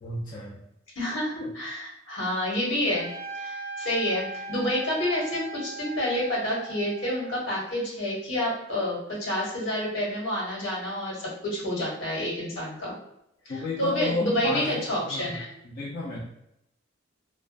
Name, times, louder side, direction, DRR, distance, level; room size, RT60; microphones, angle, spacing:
voice 1, 0.0-0.6 1.4-1.5 13.5-15.3 15.6-16.2, left 2 dB, 45° left, -6 dB, 0.5 m, -32 dB
voice 2, 0.9-3.1 3.3-13.0 13.4-15.4, left 1 dB, 80° left, -5 dB, 1.3 m, -29 dB
Trumpet, 2.9-7.6, right 3 dB, 10° right, 0.5 m, -39 dB
2.3 x 2.2 x 2.5 m, 0.81 s
head